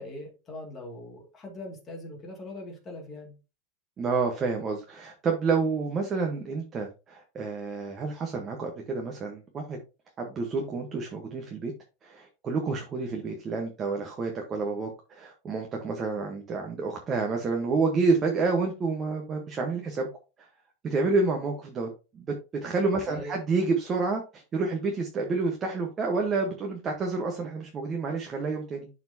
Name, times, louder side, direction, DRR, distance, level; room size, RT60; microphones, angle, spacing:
voice 1, 0.0-3.3 23.1-23.4, left 1 dB, 20° left, 2.3 m, -41 dB
voice 2, 4.0-9.8 10.2-11.7 12.0-20.1 20.8-22.3 22.6-28.9, right 4 dB, 20° right, 1.1 m, -29 dB
11.5 x 4.3 x 2.8 m
supercardioid pair, 170°, 0 cm